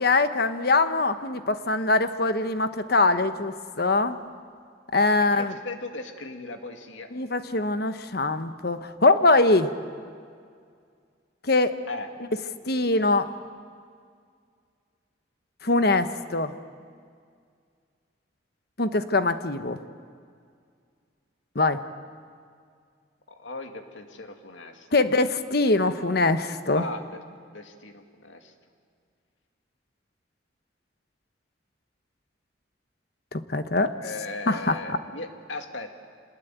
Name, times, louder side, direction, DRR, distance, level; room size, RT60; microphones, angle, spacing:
voice 1, 0.0-4.2 4.9-5.5 7.1-9.7 11.4-11.7 12.6-13.3 15.6-16.5 18.8-19.8 21.5-21.9 24.9-26.9 33.3-33.9 34.5-34.8, left 2 dB, 55° left, 10 dB, 1.1 m, -23 dB
voice 2, 5.3-7.1 11.9-12.1 23.3-24.9 26.7-27.2 27.5-28.5 34.0-35.9, left 2 dB, 90° left, 5 dB, 2.2 m, -38 dB
26.5 x 20.5 x 9.2 m, 2.2 s
head